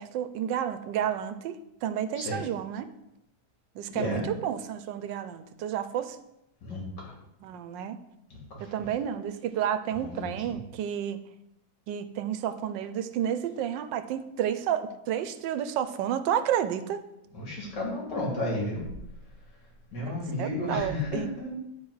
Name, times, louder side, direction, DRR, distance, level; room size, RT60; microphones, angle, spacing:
voice 1, 0.0-2.9 3.7-6.2 7.4-8.0 8.6-11.2 11.9-17.0 20.4-21.3, right 9 dB, 85° right, 11 dB, 1.3 m, -31 dB
voice 2, 3.9-4.3 6.6-7.1 8.3-8.8 9.9-10.6 17.3-18.8 19.9-21.5, left 1 dB, 70° left, -3 dB, 3.0 m, -33 dB
10.5 x 4.7 x 4.8 m, 0.87 s
omnidirectional pair, 1.9 m